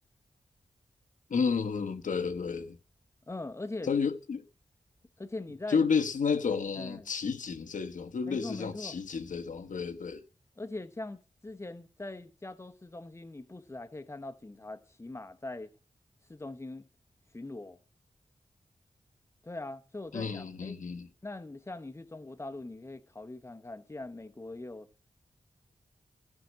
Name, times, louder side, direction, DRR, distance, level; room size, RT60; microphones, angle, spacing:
voice 1, 1.3-2.8 3.8-4.4 5.7-10.2 20.1-21.1, left 5 dB, 80° left, 1.1 m, -31 dB
voice 2, 3.3-3.9 5.2-5.8 6.8-7.1 8.2-9.0 10.6-15.7 16.3-16.9 17.3-17.8 19.4-20.8 21.2-24.9, left 2 dB, 20° left, 1.0 m, -42 dB
14.5 x 5.9 x 6.3 m
wide cardioid pair, 95°, 13 cm